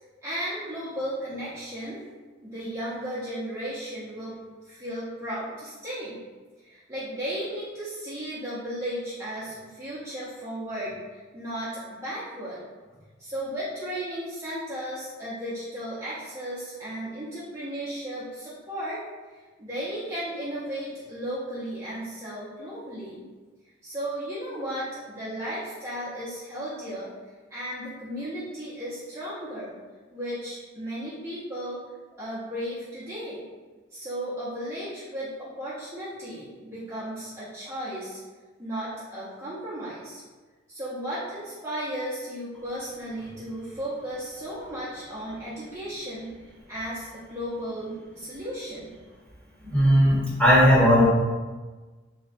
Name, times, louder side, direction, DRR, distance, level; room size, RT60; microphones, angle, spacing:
voice 1, 0.2-2.0 2.4-6.2 6.6-11.0 11.3-12.6 13.2-19.0 19.6-23.2 23.8-27.1 27.5-29.7 30.1-31.8 32.2-33.4 33.9-38.2 38.6-40.2 40.7-46.3 46.7-48.9, equal, 15° right, -12 dB, 0.8 m, -35 dB
voice 2, 49.6-51.1, equal, 5° left, -9 dB, 1.0 m, -18 dB
3.2 x 2.4 x 4.0 m, 1.3 s
head